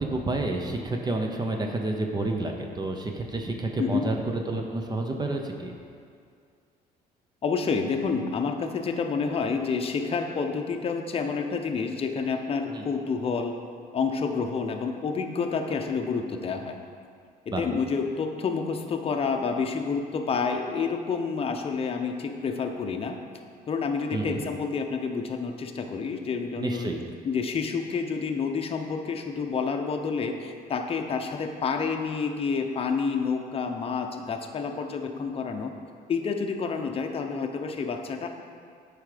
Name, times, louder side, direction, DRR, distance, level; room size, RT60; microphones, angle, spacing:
voice 1, 0.0-5.7 12.7-12.9 17.5-17.6 24.1-24.4 26.6-27.0, right 2 dB, 25° right, 2 dB, 0.7 m, -29 dB
voice 2, 7.4-13.6 13.9-16.8 17.5-23.2 23.7-26.9 27.2-35.7 36.1-38.3, left 5 dB, 35° left, 4 dB, 0.7 m, -29 dB
7.8 x 4.9 x 5.0 m, 2.2 s
cardioid pair, 110°, 17 cm